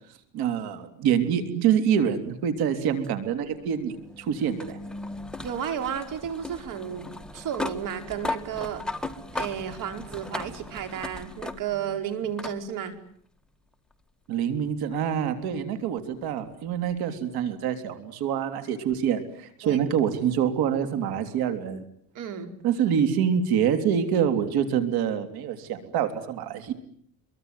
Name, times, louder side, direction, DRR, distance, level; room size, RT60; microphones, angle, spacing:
voice 1, 0.3-4.8 14.3-21.8 22.6-26.7, right 8 dB, 70° right, 8 dB, 3.6 m, -26 dB
sound 1, 3.0-11.9 12.4-12.6 13.9-14.0 16.9-17.0, left 2 dB, ahead, 1.8 m, -37 dB
voice 2, 5.4-7.1 7.3-8.8 9.3-12.9 19.6-19.8 22.1-22.5, right 8 dB, 55° right, 7 dB, 4.9 m, -32 dB
26.0 x 23.5 x 9.4 m, 0.63 s
cardioid pair, 150°, 39 cm